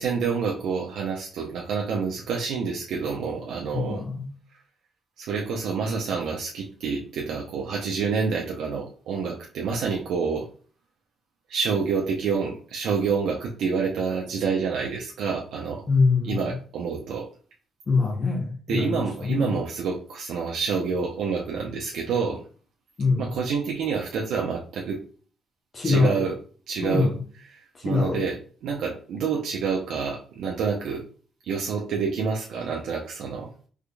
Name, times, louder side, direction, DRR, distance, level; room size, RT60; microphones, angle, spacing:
voice 1, 0.0-4.0 5.2-10.5 11.5-15.8 16.2-17.3 18.7-22.4 23.2-25.0 25.8-26.3 26.7-27.1 27.5-31.0 31.5-33.5, right 5 dB, 80° right, 0.6 m, -28 dB
voice 2, 3.7-4.3 15.9-16.4 17.9-19.5 23.0-23.2 25.7-26.2 26.8-27.1 27.8-28.2, left 4 dB, 35° left, 0.8 m, -23 dB
3.6 x 3.5 x 2.2 m
cardioid pair, 90°, 0 cm